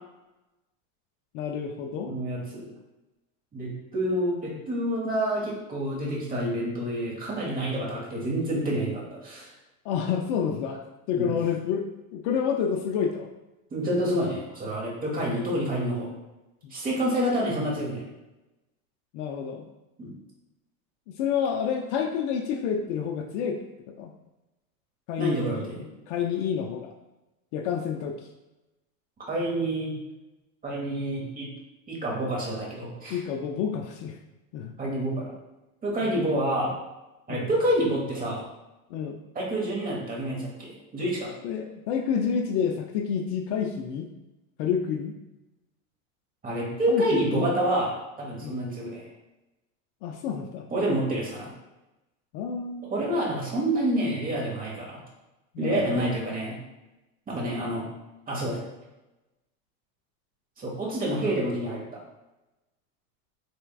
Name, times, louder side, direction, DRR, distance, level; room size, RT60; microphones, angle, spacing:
voice 1, 1.3-2.1 9.8-10.8 11.1-11.9 12.1-13.3 16.6-16.7 19.1-19.7 21.1-23.6 23.9-24.1 25.1-26.9 27.5-28.1 33.1-34.2 34.5-34.7 36.0-36.1 37.3-37.5 38.9-39.2 41.4-44.1 44.6-45.2 46.9-47.5 48.4-48.6 50.0-50.7 52.3-52.9 55.5-56.1, left 7 dB, 55° left, 4 dB, 0.5 m, -29 dB
voice 2, 2.1-2.7 3.5-9.5 11.2-11.3 13.7-16.1 16.7-18.0 20.0-20.1 25.2-25.8 29.2-29.9 30.6-31.5 31.9-33.2 34.8-35.2 35.8-36.8 37.3-38.4 39.3-41.4 46.4-49.0 50.7-51.5 52.9-55.0 55.6-56.6 57.3-57.8 58.3-58.6 60.6-62.0, right 1 dB, 20° right, -3 dB, 1.2 m, -28 dB
4.5 x 3.3 x 2.3 m, 1.0 s
supercardioid pair, 125°, 44 cm